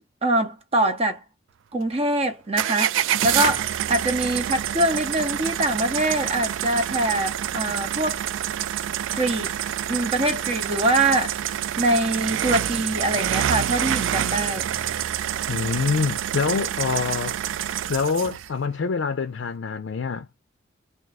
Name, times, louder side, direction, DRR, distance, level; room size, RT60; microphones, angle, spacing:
voice 1, 0.2-1.2 1.7-8.2 9.1-9.6 9.9-11.4 11.8-14.7, right 1 dB, 30° right, 0.7 m, -24 dB
sound 1, 2.6-18.5, right 10 dB, 80° right, 0.3 m, -27 dB
voice 2, 15.5-17.4 17.9-20.3, left 5 dB, 75° left, 0.4 m, -25 dB
2.5 x 2.4 x 4.0 m
head